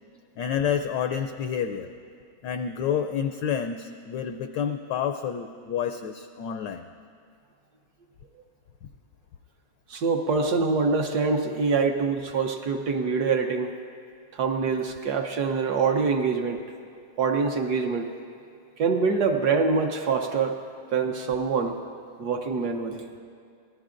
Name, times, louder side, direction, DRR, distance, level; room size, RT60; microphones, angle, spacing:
voice 1, 0.4-1.9 2.4-6.9, left 8 dB, 75° left, 6 dB, 1.0 m, -29 dB
voice 2, 9.9-13.7 14.3-16.6 17.2-18.1 18.8-20.6 20.9-21.8 22.2-23.0, right 4 dB, 65° right, 4 dB, 1.1 m, -25 dB
24.0 x 17.0 x 2.5 m, 2.3 s
omnidirectional pair, 2.4 m